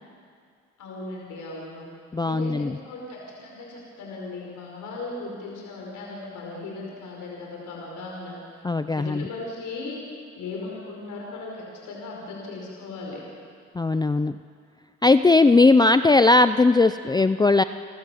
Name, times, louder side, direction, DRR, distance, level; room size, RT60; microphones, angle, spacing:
voice 1, 0.8-1.9 2.2-8.6 8.9-10.0 10.4-13.2, left 3 dB, 80° left, -2 dB, 5.3 m, -37 dB
voice 2, 2.1-2.7 8.6-9.3 13.8-14.4 15.0-17.6, left 3 dB, 15° left, 11 dB, 0.5 m, -18 dB
29.5 x 13.5 x 7.9 m, 2.2 s
cardioid pair, 90°, 30 cm